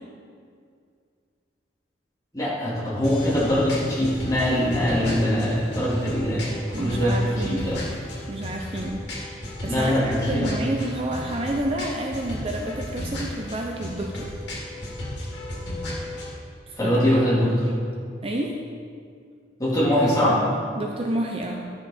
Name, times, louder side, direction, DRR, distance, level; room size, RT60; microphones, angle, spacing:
voice 1, 2.3-7.8 9.7-10.5 16.8-17.7 19.6-20.4, equal, 20° left, -7 dB, 2.2 m, -22 dB
sound 1, 3.0-16.3, left 1 dB, 65° left, 2.4 m, -34 dB
voice 2, 6.7-7.8 8.3-14.3 16.7-17.0 17.6-17.8 18.2-18.5 20.8-21.7, right 1 dB, 30° right, 1 dB, 0.5 m, -30 dB
11.5 x 5.8 x 4.2 m, 2.2 s
head